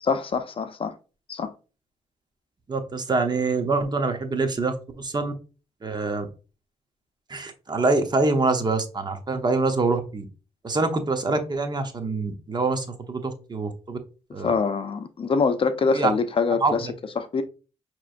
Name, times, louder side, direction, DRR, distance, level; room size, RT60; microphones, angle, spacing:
voice 1, 0.0-1.0 1.3-1.5 14.4-16.9 17.2-17.4, left 4 dB, 50° left, 0.6 m, -24 dB
voice 2, 2.7-5.3 5.8-6.3 7.3-10.2 10.6-14.0 14.3-14.5 15.9-16.1 16.6-16.9, right 3 dB, 35° right, 0.9 m, -25 dB
5.9 x 3.0 x 2.5 m
cardioid pair, 85°, 12 cm